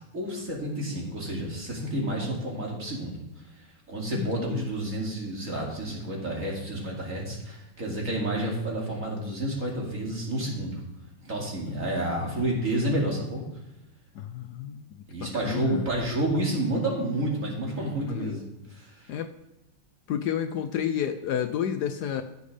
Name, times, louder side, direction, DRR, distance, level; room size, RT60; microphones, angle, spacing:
voice 1, 0.1-3.2 3.9-10.8 11.2-13.4 15.1-19.1, right 1 dB, 45° right, -3 dB, 2.8 m, -30 dB
voice 2, 4.1-4.7 11.6-12.4 14.1-15.9 18.0-18.4 19.1-19.3 20.1-22.2, left 9 dB, 70° left, 9 dB, 1.1 m, -31 dB
15.0 x 6.5 x 3.3 m, 0.99 s
omnidirectional pair, 2.0 m